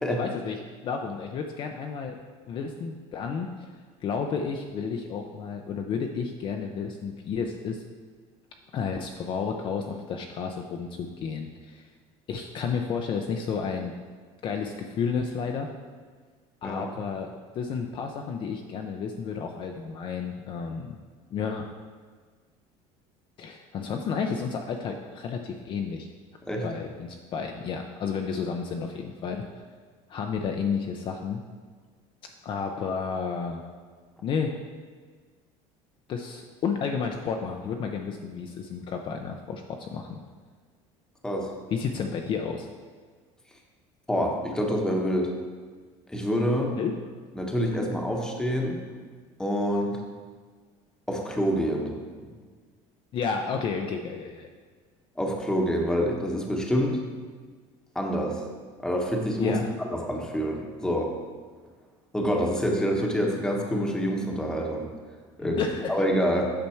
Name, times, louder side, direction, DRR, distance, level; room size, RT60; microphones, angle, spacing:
voice 1, 0.1-2.2 2.5-3.5 4.0-7.8 8.7-11.9 12.3-13.9 14.4-15.7 16.6-21.0 21.3-21.7 23.4-26.1 26.6-29.4 30.1-31.4 32.4-33.6 34.2-34.5 36.1-40.2 41.7-42.7 46.7-46.9 53.1-54.5 59.4-59.7 65.4-65.9, left 6 dB, 40° left, 3 dB, 0.5 m, -31 dB
voice 2, 16.6-16.9 26.4-26.6 41.2-41.5 44.1-45.3 46.1-46.7 47.3-48.8 49.4-50.0 51.1-52.3 55.2-57.0 57.9-58.4 58.8-59.6 59.9-61.1 62.1-64.9 65.4-65.6 65.9-66.5, equal, 5° left, 1 dB, 1.0 m, -27 dB
8.6 x 5.8 x 4.5 m, 1.5 s
cardioid pair, 145°, 13 cm